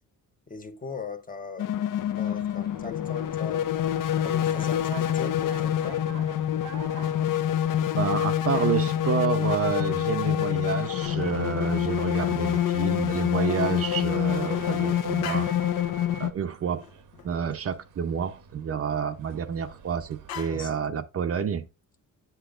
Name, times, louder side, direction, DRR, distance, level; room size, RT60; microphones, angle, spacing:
voice 1, 0.5-1.7 2.2-3.7 4.2-6.0 20.5-21.0, left 4 dB, 25° left, 0.7 m, -40 dB
sound 1, 1.6-16.3, left 11 dB, 65° left, 0.6 m, -26 dB
sound 2, 2.0-20.3, right 6 dB, 65° right, 0.9 m, -47 dB
voice 2, 8.0-15.5 16.2-16.8 17.2-21.7, right 7 dB, 45° right, 0.7 m, -29 dB
sound 3, 15.2-15.9 16.2-16.3 16.5-17.3 17.6-17.7 18.0-18.1 18.8-19.8 20.3-20.7, left 9 dB, 90° left, 1.1 m, -42 dB
8.2 x 7.8 x 2.4 m
cardioid pair, 120°, 34 cm